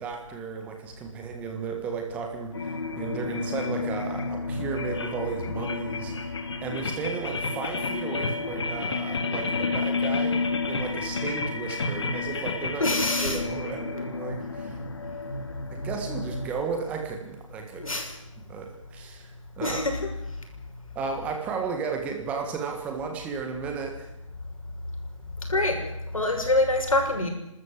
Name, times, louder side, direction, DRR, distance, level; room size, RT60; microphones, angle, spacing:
voice 1, 0.0-6.1 6.6-14.8 15.7-18.0 18.5-19.3 19.6-19.8 20.9-24.1 26.1-26.2, right 5 dB, 10° right, 3 dB, 1.5 m, -34 dB
sound 1, 2.5-16.5, left 3 dB, 55° left, 2.8 m, -30 dB
voice 2, 12.8-13.4 17.8-18.1 19.6-19.9 25.5-25.8 26.1-27.3, left 2 dB, 90° left, 4 dB, 6.3 m, -24 dB
29.5 x 13.0 x 8.3 m, 0.89 s
hypercardioid pair, 165°, 17 cm